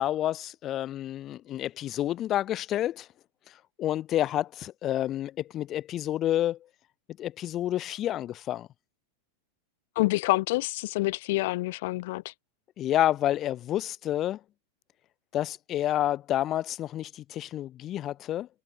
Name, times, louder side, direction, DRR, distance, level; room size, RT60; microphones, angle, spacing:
voice 1, 0.0-3.1 3.8-6.6 7.2-8.7 12.8-14.4 15.3-18.5, left 12 dB, 30° left, 4.9 m, -29 dB
voice 2, 10.0-12.2, left 20 dB, 50° left, 1.0 m, -27 dB
figure-of-eight pair, 90°, 0 cm